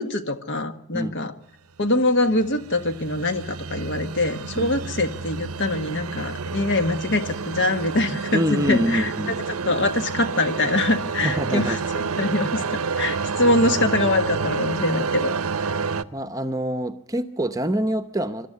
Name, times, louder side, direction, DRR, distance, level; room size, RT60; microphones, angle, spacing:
voice 1, 0.0-1.3 1.8-9.1 9.5-12.6 13.0-15.3, left 2 dB, 55° left, 8 dB, 1.7 m, -23 dB
sound 1, 1.9-16.0, right 5 dB, 75° right, 0.8 m, -29 dB
voice 2, 8.3-9.4 11.2-11.8 16.1-18.5, equal, 15° right, 10 dB, 0.8 m, -25 dB
25.5 x 13.0 x 8.1 m, 0.74 s
head